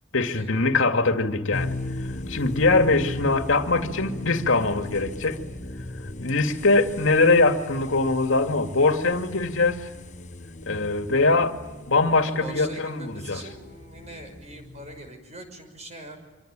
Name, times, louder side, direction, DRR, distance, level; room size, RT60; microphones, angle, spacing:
voice 1, 0.1-1.8 2.3-5.4 6.2-9.9 10.7-11.5 11.9-13.4, left 3 dB, 90° left, 7 dB, 2.4 m, -22 dB
sound 1, 1.5-15.1, left 1 dB, 40° left, 1.2 m, -37 dB
voice 2, 12.2-16.2, right 1 dB, 35° right, 6 dB, 6.1 m, -42 dB
26.0 x 25.0 x 9.0 m, 1.1 s
head